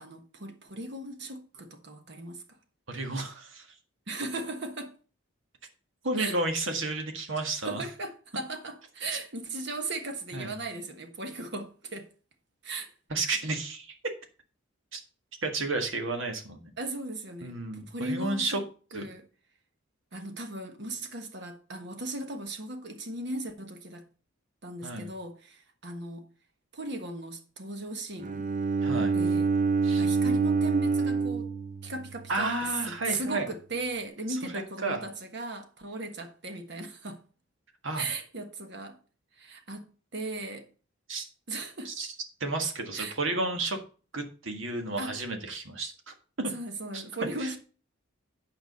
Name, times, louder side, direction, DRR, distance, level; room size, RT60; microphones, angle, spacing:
voice 1, 0.0-2.6 4.1-5.0 6.2-6.4 7.6-12.1 12.6-12.9 16.8-18.6 18.9-19.2 20.1-24.1 24.6-26.3 26.7-28.5 29.1-29.5 29.9-31.5 31.8-32.5 32.9-37.2 37.9-39.0 39.4-40.7 41.5-41.9 42.9-43.2 45.0-45.2 46.5-47.6, right 2 dB, 55° right, 1.3 m, -37 dB
voice 2, 2.9-3.7 6.0-7.8 9.1-9.2 10.3-10.5 13.1-14.0 14.9-15.0 15.4-16.7 17.4-18.6 18.9-19.0 24.8-25.1 28.8-29.1 29.8-30.1 32.3-33.5 34.3-35.0 37.8-38.0 41.1-41.3 41.8-42.1 42.4-43.8 44.1-46.5 46.9-47.0 47.4-47.5, right 2 dB, 70° right, 1.8 m, -32 dB
Bowed string instrument, 28.2-32.3, right 4 dB, 40° right, 0.6 m, -26 dB
9.0 x 5.0 x 5.3 m
head